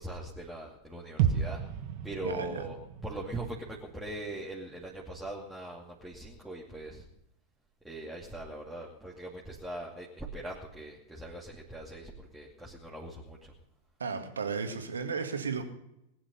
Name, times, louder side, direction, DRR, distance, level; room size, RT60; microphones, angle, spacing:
voice 1, 0.0-1.6 2.0-2.8 3.0-7.1 7.8-13.5, right 1 dB, 5° right, -4 dB, 2.5 m, -41 dB
sound 1, 1.2-5.1 5.4-5.5, right 8 dB, 45° right, 1.6 m, -34 dB
voice 2, 2.2-2.6 14.0-15.6, right 5 dB, 70° right, 6 dB, 2.0 m, -34 dB
20.0 x 10.0 x 5.6 m, 0.83 s
figure-of-eight pair, 90°, 0 cm